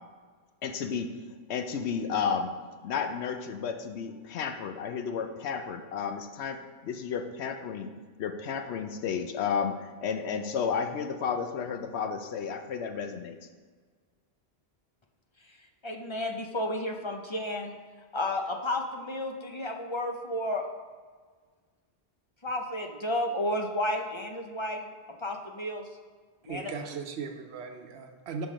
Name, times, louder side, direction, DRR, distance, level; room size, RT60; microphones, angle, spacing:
voice 1, 0.6-1.1 1.5-2.5 2.8-7.9 8.2-13.4, left 6 dB, 90° left, 7 dB, 0.9 m, -32 dB
voice 2, 15.8-17.7 18.1-20.7 22.4-24.9 25.2-25.9 26.4-26.7, left 1 dB, 35° left, 3 dB, 0.5 m, -32 dB
voice 3, 26.4-28.5, right 5 dB, 75° right, 5 dB, 1.0 m, -38 dB
5.9 x 5.2 x 5.0 m, 1.5 s
omnidirectional pair, 1.1 m